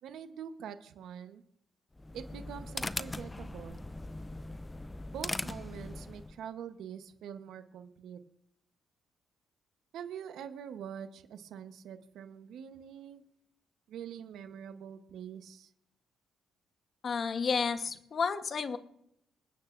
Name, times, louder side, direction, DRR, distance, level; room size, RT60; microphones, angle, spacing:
voice 1, 0.0-1.4 2.1-3.8 5.1-8.2 9.9-13.2 13.9-15.7, right 8 dB, 75° right, 8 dB, 1.0 m, -45 dB
sound 1, 1.9-6.4, left 2 dB, 15° left, 0.4 m, -40 dB
voice 2, 17.0-18.8, left 5 dB, 50° left, 8 dB, 1.1 m, -31 dB
26.5 x 8.9 x 2.6 m, 0.74 s
cardioid pair, 90°, 0 cm